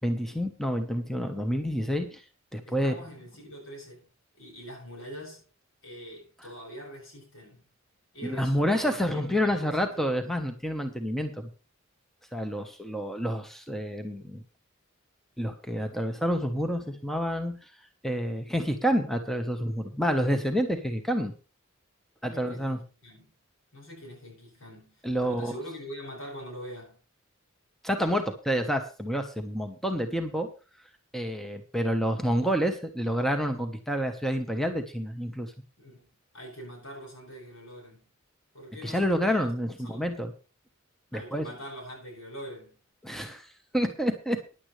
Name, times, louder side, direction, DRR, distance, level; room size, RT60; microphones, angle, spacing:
voice 1, 0.0-2.2 2.5-2.9 8.2-11.5 12.3-14.4 15.4-17.7 18.0-21.3 22.2-22.8 25.0-25.6 27.8-30.5 31.1-35.5 38.8-40.3 41.1-41.4 43.0-43.5 43.7-44.4, equal, ahead, 1.1 m, -28 dB
voice 2, 2.7-4.1 4.3-5.4 5.8-7.6 8.1-10.1 22.2-23.3 23.7-27.0 35.8-36.1 36.3-38.0 38.5-40.1 41.1-42.8, equal, 80° left, 7.9 m, -44 dB
15.5 x 10.5 x 3.3 m
head